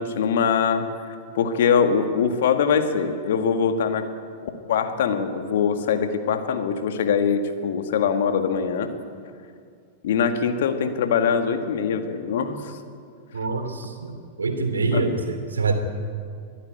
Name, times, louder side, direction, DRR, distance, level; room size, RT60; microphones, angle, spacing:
voice 1, 0.0-4.0 4.4-8.9 10.0-12.8 14.9-15.2, left 6 dB, 60° left, 7 dB, 1.8 m, -23 dB
voice 2, 13.3-15.1 15.5-15.7, right 4 dB, 75° right, 6 dB, 2.7 m, -25 dB
22.5 x 13.0 x 9.2 m, 2.2 s
figure-of-eight pair, 95°, 0 cm